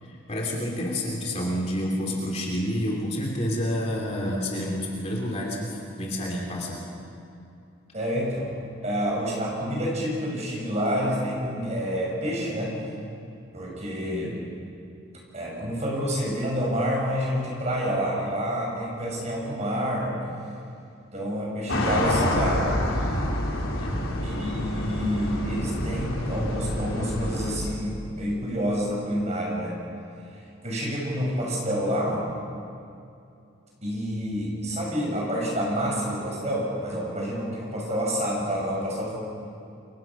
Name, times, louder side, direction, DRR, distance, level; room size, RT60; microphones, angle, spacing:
voice 1, 0.0-6.8 14.0-14.4 23.8-24.2, equal, 30° left, -1 dB, 2.9 m, -29 dB
voice 2, 7.9-8.5 8.8-12.8 13.5-14.3 15.3-20.1 21.1-22.8 24.2-29.7 30.3-32.2 33.8-39.1, equal, 35° right, -2 dB, 6.4 m, -28 dB
sound 1, 21.7-27.6, left 1 dB, 80° left, 3.9 m, -27 dB
28.5 x 23.5 x 6.1 m, 2.6 s
head